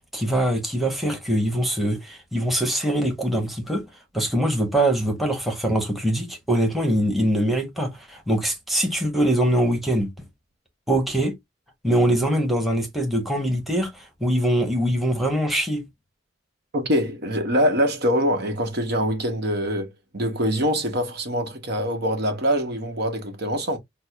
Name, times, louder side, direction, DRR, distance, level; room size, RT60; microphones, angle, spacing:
voice 1, 0.1-3.8 4.1-10.1 10.9-11.3 11.8-15.8, right 1 dB, ahead, 1.0 m, -23 dB
voice 2, 16.7-23.8, equal, 60° right, 0.9 m, -24 dB
6.0 x 2.0 x 2.3 m
head